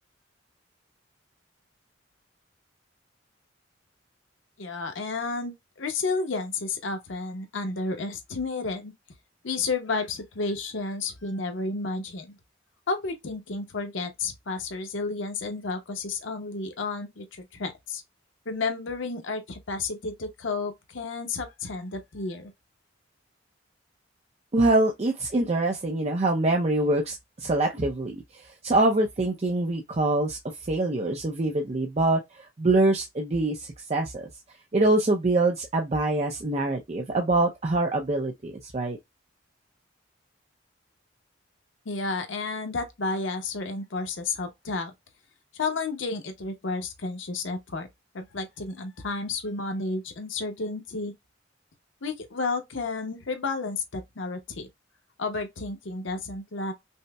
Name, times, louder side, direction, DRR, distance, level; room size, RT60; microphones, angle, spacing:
voice 1, 4.6-8.9 9.4-12.4 12.9-18.0 18.5-22.5 41.9-44.9 45.5-47.9 48.1-51.1 52.0-54.7 55.2-56.7, left 3 dB, 80° left, 0.8 m, -31 dB
voice 2, 24.5-30.4 30.7-34.3 34.7-39.0, right 2 dB, 35° right, 0.6 m, -25 dB
5.4 x 2.1 x 2.2 m
head